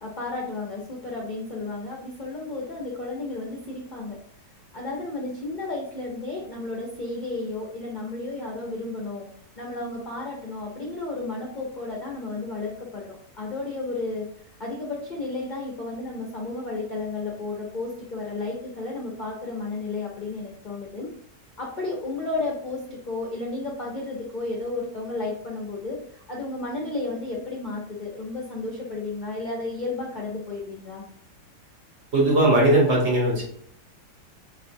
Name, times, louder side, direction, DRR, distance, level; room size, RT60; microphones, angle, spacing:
voice 1, 0.0-4.2 4.7-9.3 9.6-14.3 14.6-21.1 21.6-31.0, left 3 dB, 50° left, -3 dB, 0.5 m, -32 dB
voice 2, 32.1-33.4, right 1 dB, 45° right, -2 dB, 1.2 m, -19 dB
5.1 x 3.2 x 2.6 m, 0.62 s
omnidirectional pair, 1.9 m